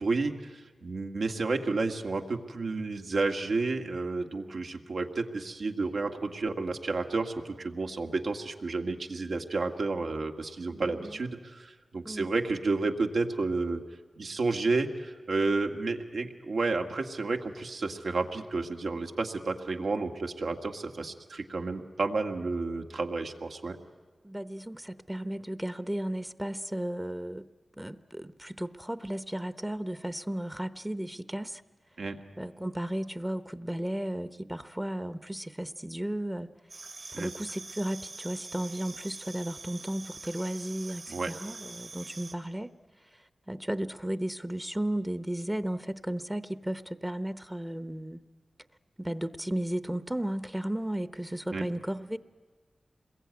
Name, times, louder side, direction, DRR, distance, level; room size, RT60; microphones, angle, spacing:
voice 1, 0.0-13.8 14.2-23.8 32.0-32.2 37.1-37.3 41.1-41.3 51.5-51.6, right 3 dB, 80° right, 4 dB, 2.0 m, -31 dB
voice 2, 10.7-11.2 12.0-12.3 24.2-27.5 27.8-31.6 32.4-36.5 37.1-42.7 43.1-43.2 43.5-48.2 49.0-52.2, right 1 dB, 10° right, 13 dB, 0.8 m, -34 dB
sound 1, 36.7-42.3, right 3 dB, 60° right, 2.8 m, -45 dB
27.5 x 22.0 x 9.6 m, 1.5 s
wide cardioid pair, 90°, 0 cm